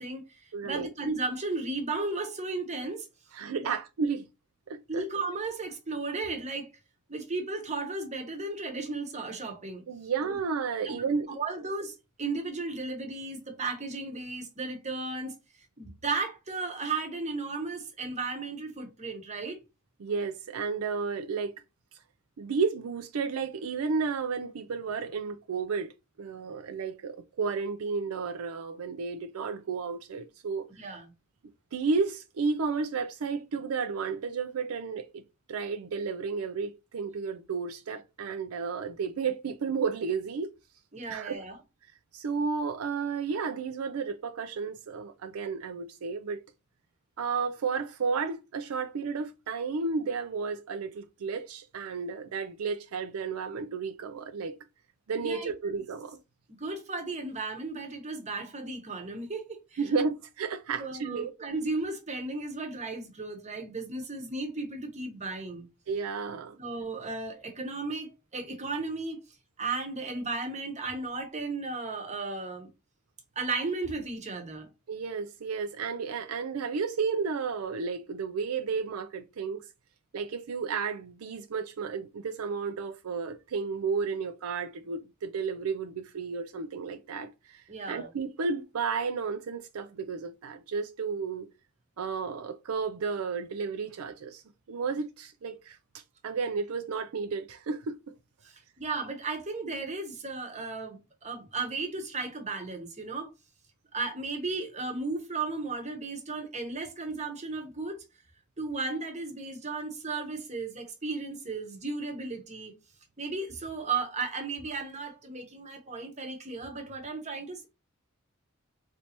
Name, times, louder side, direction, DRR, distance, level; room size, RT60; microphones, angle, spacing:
voice 1, 0.0-3.1 3.6-3.8 4.9-6.7 7.1-9.8 10.2-10.4 10.8-15.4 15.8-19.6 30.8-31.1 40.9-41.6 55.2-55.5 56.6-59.8 60.8-65.7 66.6-69.2 69.6-72.7 73.4-74.7 87.7-88.1 98.4-103.3 103.9-108.0 108.6-112.7 113.2-117.7, right 3 dB, 30° right, 1.0 m, -35 dB
voice 2, 0.5-0.9 3.3-4.3 4.7-5.0 9.9-11.3 20.0-21.5 22.4-25.9 26.2-30.7 31.7-35.2 35.5-40.5 41.1-41.4 42.1-46.4 47.2-54.6 55.1-56.2 59.8-61.3 65.9-66.6 74.9-79.6 80.1-91.5 92.0-94.4 94.7-98.0, right 5 dB, 75° right, 0.4 m, -32 dB
4.2 x 3.2 x 2.9 m
head